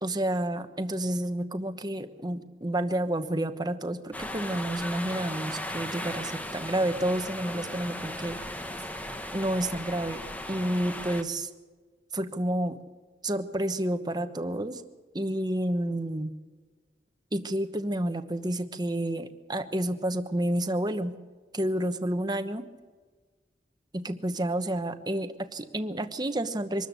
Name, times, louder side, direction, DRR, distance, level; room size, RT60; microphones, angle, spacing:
voice 1, 0.0-8.4 9.3-10.2 10.5-11.5 12.1-12.8 13.2-14.8 15.1-16.3 17.3-21.2 21.5-22.6 23.9-26.9, right 1 dB, 25° right, 9 dB, 1.1 m, -30 dB
sound 1, 4.1-11.2, left 1 dB, 10° left, 1.1 m, -37 dB
24.5 x 13.0 x 8.2 m, 1.4 s
head